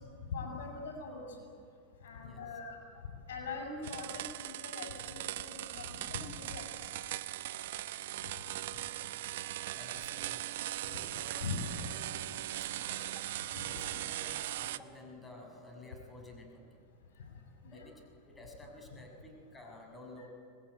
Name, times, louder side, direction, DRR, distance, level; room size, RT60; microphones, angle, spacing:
voice 1, 0.3-1.2 2.0-2.8 3.3-6.6 11.4-11.6 13.6-13.7 17.6-17.9, left 4 dB, 75° left, 4 dB, 7.1 m, -42 dB
voice 2, 2.2-3.0 8.6-9.0 9.7-10.5 10.8-12.5 12.7-16.8 17.7-17.9 18.2-20.3, left 1 dB, 15° left, 2 dB, 6.4 m, -53 dB
sound 1, 3.8-14.8, right 14 dB, 70° right, 0.9 m, -39 dB
25.0 x 20.5 x 9.5 m, 2.5 s
hypercardioid pair, 105°, 0 cm